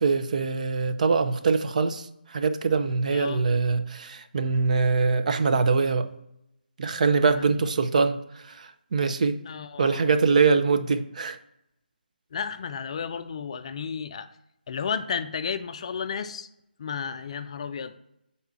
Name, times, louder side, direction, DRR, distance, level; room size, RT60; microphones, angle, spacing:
voice 1, 0.0-2.1 2.3-6.1 6.8-8.2 8.6-8.7 8.9-9.4 9.8-11.4, right 4 dB, 45° right, 0.5 m, -23 dB
voice 2, 3.1-3.4 7.3-7.6 9.4-10.1 12.3-14.3 14.7-16.5 16.8-18.0, left 6 dB, 35° left, 0.4 m, -33 dB
6.7 x 4.1 x 3.6 m
figure-of-eight pair, 160°, 5 cm